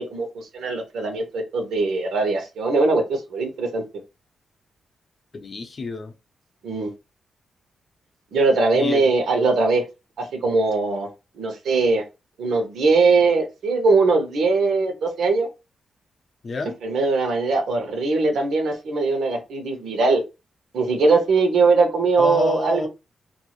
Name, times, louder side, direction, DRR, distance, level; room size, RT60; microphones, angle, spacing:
voice 1, 0.0-3.8 6.6-6.9 8.3-9.8 10.2-11.1 11.4-12.0 12.4-15.5 16.8-20.2 20.7-22.9, right 3 dB, 85° right, 0.9 m, -21 dB
voice 2, 5.3-6.1 8.8-9.1 16.4-16.8 22.2-22.9, left 3 dB, 35° left, 0.6 m, -28 dB
2.6 x 2.4 x 3.0 m
wide cardioid pair, 150°, 0 cm